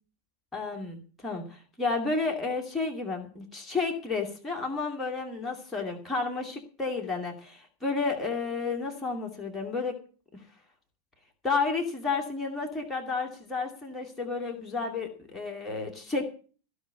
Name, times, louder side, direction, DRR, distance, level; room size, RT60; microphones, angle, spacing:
voice 1, 0.5-10.0 11.4-16.2, left 4 dB, 10° left, 1 dB, 2.5 m, -31 dB
15.0 x 5.1 x 9.5 m, 0.40 s
figure-of-eight pair, 90°, 0 cm